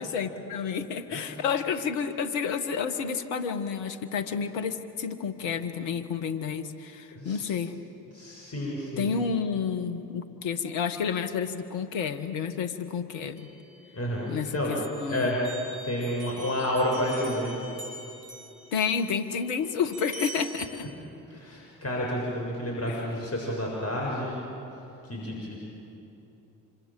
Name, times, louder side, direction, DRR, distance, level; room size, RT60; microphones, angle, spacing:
voice 1, 0.0-7.8 9.0-13.5 14.3-15.3 18.7-20.9 22.9-23.0, left 6 dB, 70° left, 9 dB, 1.6 m, -30 dB
voice 2, 8.1-9.1 13.9-14.7 15.1-15.4 15.8-17.6 21.3-24.4 25.1-25.6, left 1 dB, 30° left, -2 dB, 7.2 m, -30 dB
sound 1, 13.4-14.4 14.8-20.7, right 2 dB, 50° right, 5.3 m, -44 dB
26.5 x 26.0 x 7.8 m, 3.0 s
hypercardioid pair, 45°, 45 cm